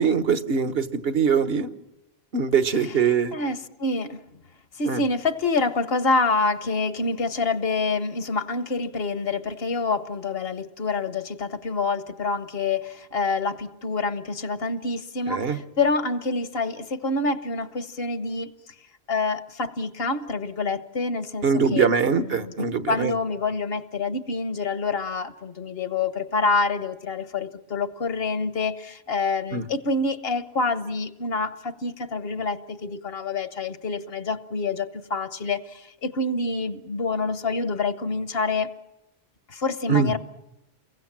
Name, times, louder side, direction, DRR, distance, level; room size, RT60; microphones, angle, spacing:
voice 1, 0.0-1.7 2.3-3.3 4.9-5.0 15.3-15.6 21.4-23.1 29.5-29.6 39.9-40.1, right 6 dB, 70° right, 11 dB, 1.4 m, -22 dB
voice 2, 3.3-4.2 4.8-18.5 19.1-22.5 22.9-38.7 39.5-40.2, left 3 dB, 70° left, 13 dB, 1.3 m, -27 dB
29.0 x 22.5 x 7.5 m, 0.93 s
omnidirectional pair, 1.0 m